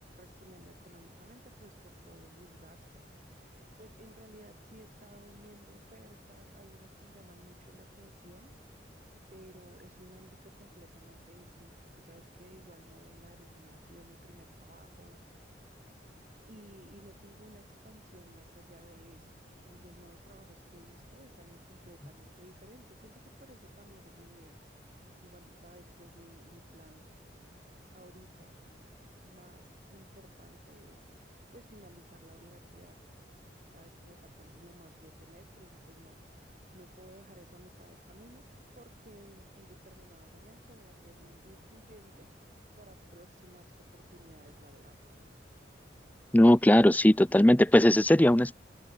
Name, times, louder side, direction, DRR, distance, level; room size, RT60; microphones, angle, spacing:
voice 1, 0.2-9.0 9.3-15.8 16.5-19.3 19.6-27.1 27.9-28.6 29.2-33.0 33.7-38.4 38.7-45.0, right 1 dB, 45° right, 7.6 m, -57 dB
voice 2, 46.3-48.5, left 1 dB, 10° left, 0.5 m, -19 dB
head